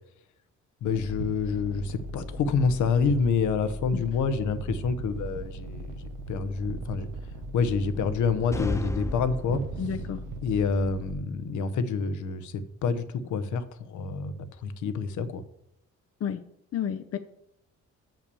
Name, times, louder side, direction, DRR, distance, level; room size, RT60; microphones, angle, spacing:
voice 1, 0.8-7.1 7.5-10.0 10.4-15.4, left 5 dB, 75° left, 11 dB, 0.9 m, -28 dB
sound 1, 0.8-11.1, right 2 dB, 85° right, 0.9 m, -38 dB
sound 2, 8.5-10.2, left 2 dB, 10° left, 0.6 m, -33 dB
voice 2, 9.8-10.2 16.2-16.4 16.7-17.2, left 8 dB, 50° left, 9 dB, 0.6 m, -30 dB
6.8 x 5.8 x 6.9 m, 0.77 s
cardioid pair, 90°, 30 cm